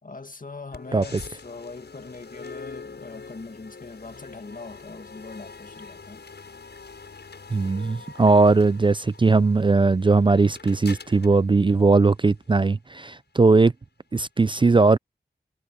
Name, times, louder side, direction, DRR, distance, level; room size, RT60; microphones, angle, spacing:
voice 1, 0.0-6.2, left 3 dB, 55° left, 2.1 m, -41 dB
sound 1, 0.7-12.7, left 4 dB, 85° left, 7.4 m, -44 dB
voice 2, 7.5-13.7 14.1-15.0, right 3 dB, 30° right, 0.4 m, -19 dB
wide cardioid pair, 60°, 17 cm